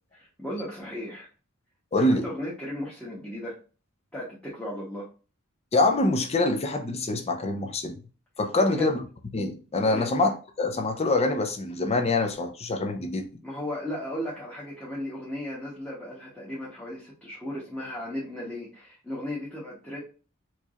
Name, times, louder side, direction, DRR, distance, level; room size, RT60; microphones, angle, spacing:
voice 1, 0.1-1.3 2.0-3.5 4.1-5.1 8.5-9.0 9.9-10.1 13.4-20.0, equal, 5° left, 1.0 m, -35 dB
voice 2, 1.9-2.2 5.7-8.0 8.4-9.0 9.3-13.3, left 2 dB, 30° left, 0.6 m, -25 dB
4.5 x 2.9 x 2.4 m
head